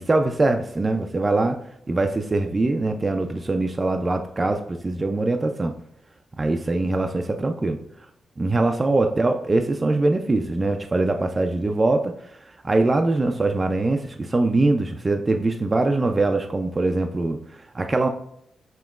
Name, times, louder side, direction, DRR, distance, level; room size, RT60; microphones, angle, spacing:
voice 1, 0.0-1.6 1.9-5.7 6.4-7.8 8.4-12.1 12.6-18.1, right 2 dB, 30° right, 5 dB, 0.3 m, -22 dB
5.1 x 2.9 x 2.4 m, 0.73 s
cardioid pair, 65°, 0 cm